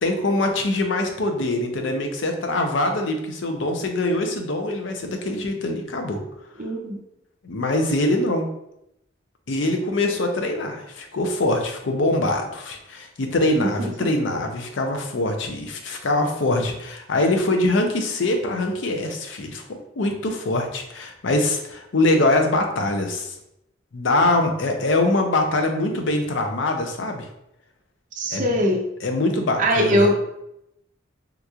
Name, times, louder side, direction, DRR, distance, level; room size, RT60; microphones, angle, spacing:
voice 1, 0.0-6.2 7.4-8.5 9.5-23.3 23.9-27.3 28.3-28.5 29.0-30.1, left 2 dB, 70° left, 4 dB, 0.5 m, -23 dB
voice 2, 6.6-7.0 13.6-13.7 28.2-28.8 29.6-30.2, equal, 40° right, 0 dB, 0.5 m, -21 dB
3.6 x 2.9 x 2.3 m, 0.82 s
head